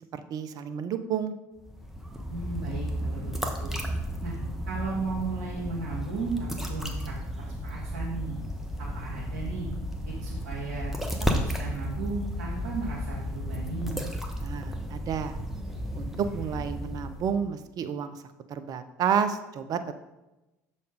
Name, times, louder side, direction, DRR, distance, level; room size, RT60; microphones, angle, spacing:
voice 1, 0.1-1.3 14.4-15.4 16.0-18.2 18.5-19.8, right 7 dB, 45° right, 10 dB, 0.7 m, -30 dB
sound 1, 1.6-17.5, equal, 5° right, 1.2 m, -33 dB
voice 2, 2.3-3.7 4.2-4.3 4.7-8.4 8.8-9.7 10.0-10.9 11.2-14.0, right 4 dB, 75° right, -5 dB, 1.6 m, -35 dB
6.7 x 4.2 x 5.1 m, 0.99 s
hypercardioid pair, 65°, 9 cm